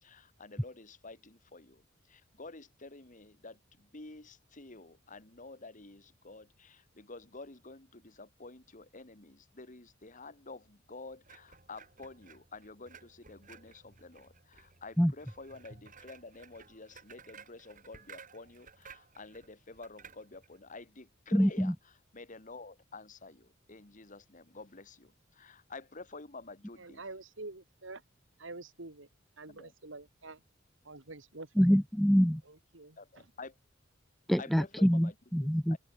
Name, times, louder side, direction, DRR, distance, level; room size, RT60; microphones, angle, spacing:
voice 1, 0.0-27.0 29.5-29.7 33.0-33.6 34.4-35.2 35.7-35.8, left 3 dB, 40° left, 2.2 m, -50 dB
sound 1, 11.2-20.6, right 5 dB, 40° right, 3.9 m, -56 dB
voice 2, 21.3-21.7 31.6-32.4 34.3-35.8, equal, ahead, 0.3 m, -25 dB
voice 3, 26.8-28.0 28.4-29.1 29.4-30.4 30.8-31.8 32.4-33.0, right 2 dB, 70° right, 2.3 m, -47 dB
open air
head